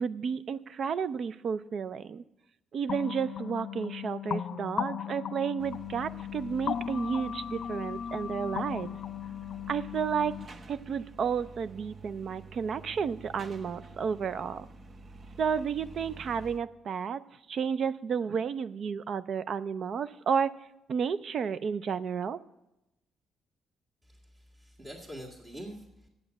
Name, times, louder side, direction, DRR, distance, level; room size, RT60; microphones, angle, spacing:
voice 1, 0.0-2.2 2.7-9.0 9.7-10.3 10.7-14.7 15.4-17.2 17.5-20.5 20.9-22.4, right 6 dB, 55° right, 15 dB, 0.4 m, -32 dB
sound 1, 2.9-10.5, left 8 dB, 65° left, 0.4 m, -37 dB
sound 2, 5.6-16.6, right 3 dB, 40° right, 0.8 m, -49 dB
voice 2, 24.0-26.1, right 1 dB, 15° right, -3 dB, 1.7 m, -45 dB
8.6 x 8.0 x 8.1 m, 0.94 s
cardioid pair, 90°, 0 cm